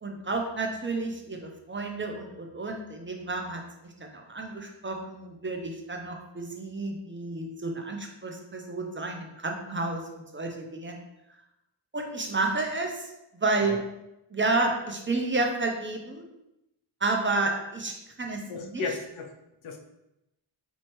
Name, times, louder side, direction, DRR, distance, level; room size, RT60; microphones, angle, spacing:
voice 1, 0.0-3.6 4.0-10.9 11.9-13.8 14.3-16.3 17.0-17.9 18.2-18.8, right 3 dB, 25° right, 2 dB, 0.6 m, -31 dB
voice 2, 18.5-19.3 19.6-19.8, left 4 dB, 75° left, 3 dB, 0.7 m, -34 dB
4.4 x 2.7 x 3.0 m, 0.89 s
cardioid pair, 75°, 48 cm